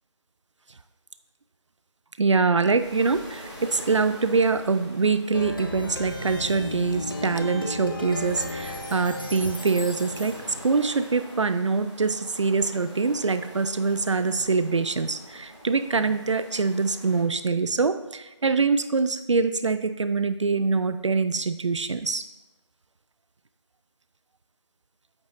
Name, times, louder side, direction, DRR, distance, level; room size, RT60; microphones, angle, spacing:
voice 1, 2.2-10.4 10.6-22.3, right 4 dB, 70° right, 11 dB, 0.4 m, -24 dB
sound 1, 2.6-17.2, equal, 15° right, 0.9 m, -45 dB
Plucked string instrument, 5.3-10.7, left 2 dB, 45° left, 0.7 m, -34 dB
8.6 x 3.1 x 4.0 m, 1.0 s
figure-of-eight pair, 180°, 16 cm